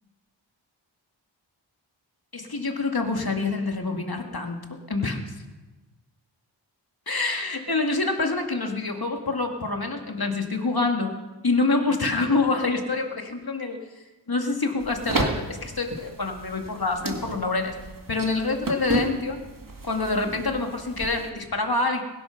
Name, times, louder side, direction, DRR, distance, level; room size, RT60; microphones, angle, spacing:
voice 1, 2.3-5.2 7.1-11.1 11.4-13.8 14.3-17.7 18.1-19.4 19.8-22.0, left 3 dB, 50° left, 3 dB, 2.3 m, -26 dB
sound 1, 14.8-21.3, right 2 dB, 45° right, 2.1 m, -32 dB
21.0 x 11.0 x 6.0 m, 1.2 s
wide cardioid pair, 45°, 48 cm